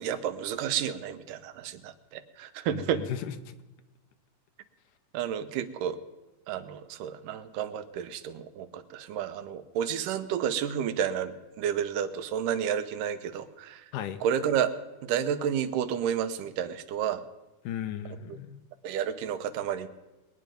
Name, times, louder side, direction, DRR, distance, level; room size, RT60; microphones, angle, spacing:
voice 1, 0.0-3.0 5.1-6.0 6.5-13.8 14.2-14.7 15.0-17.2 18.8-19.9, right 9 dB, 85° right, 10 dB, 2.4 m, -31 dB
voice 2, 2.7-3.5 13.9-14.2 17.6-18.6, left 9 dB, 90° left, 9 dB, 2.4 m, -36 dB
22.5 x 9.4 x 5.1 m, 1.1 s
omnidirectional pair, 3.7 m